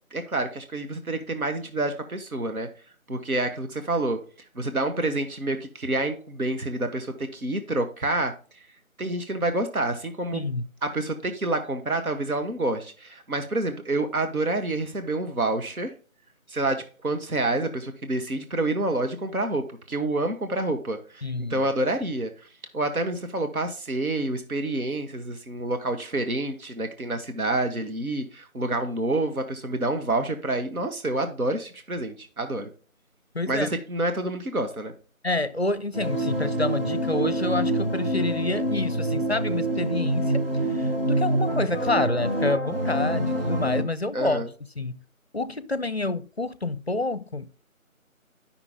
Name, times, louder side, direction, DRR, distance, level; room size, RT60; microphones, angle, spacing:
voice 1, 0.1-2.7 3.1-4.2 4.5-8.6 9.0-10.4 10.8-15.9 16.5-22.5 22.7-32.7 33.5-34.9 44.1-44.5, right 2 dB, 80° right, 1.3 m, -28 dB
voice 2, 10.3-10.6 21.2-21.7 33.3-33.7 35.2-40.4 40.7-44.4 44.8-45.0 45.3-47.5, left 2 dB, 50° left, 0.5 m, -28 dB
sound 1, 35.9-43.8, right 1 dB, 40° right, 1.4 m, -26 dB
9.6 x 5.8 x 3.7 m
figure-of-eight pair, 170°, 42 cm